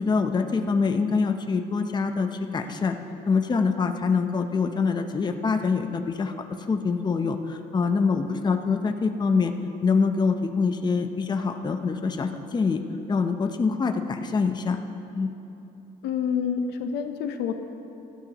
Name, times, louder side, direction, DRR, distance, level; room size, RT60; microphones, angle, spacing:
voice 1, 0.0-2.9 3.3-6.3 6.7-9.5 9.8-12.8 13.1-14.8 15.1-15.3, left 4 dB, 25° left, 6 dB, 0.7 m, -25 dB
voice 2, 16.0-17.5, left 7 dB, 80° left, 7 dB, 0.9 m, -27 dB
18.5 x 13.0 x 3.0 m, 3.0 s
cardioid pair, 110°, 17 cm